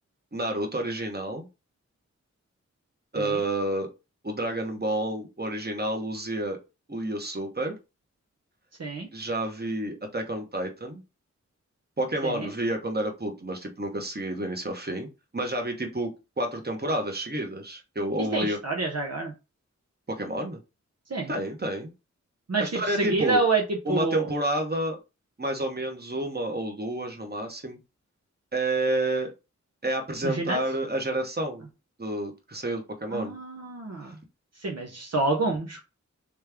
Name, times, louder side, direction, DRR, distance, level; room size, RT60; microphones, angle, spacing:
voice 1, 0.3-1.5 3.1-3.9 4.2-6.6 6.9-7.8 9.1-11.0 12.0-15.1 15.3-16.1 16.4-18.6 20.1-20.6 21.3-21.9 22.6-23.4 23.8-25.0 25.4-27.8 28.5-29.3 29.8-31.7 32.0-33.3 34.0-34.1, right 1 dB, 35° right, 3 dB, 1.1 m, -29 dB
voice 2, 18.3-19.3 21.1-21.3 22.5-24.3 30.2-30.6 33.1-34.2 34.6-35.8, right 3 dB, 60° right, 1 dB, 0.7 m, -28 dB
3.3 x 3.2 x 3.4 m, 0.28 s
wide cardioid pair, 55°, 29 cm